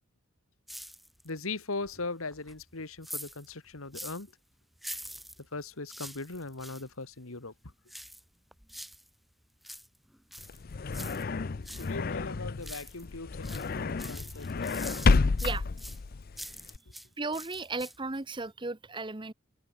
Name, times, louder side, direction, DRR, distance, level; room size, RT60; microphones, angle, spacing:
sound 1, 0.7-1.4 1.8-4.3 4.8-6.9 7.9-9.1 9.4-11.9 12.3-13.1 13.4-17.1 17.3-18.2 18.5-18.6, equal, ahead, 6.8 m, -45 dB
voice 1, 1.2-4.3 5.5-7.5 11.7-14.9, left 3 dB, 85° left, 2.1 m, -39 dB
sound 2, 10.4-16.8, left 4 dB, 45° left, 0.5 m, -30 dB
voice 2, 17.2-19.3, right 3 dB, 20° right, 0.9 m, -35 dB
open air
head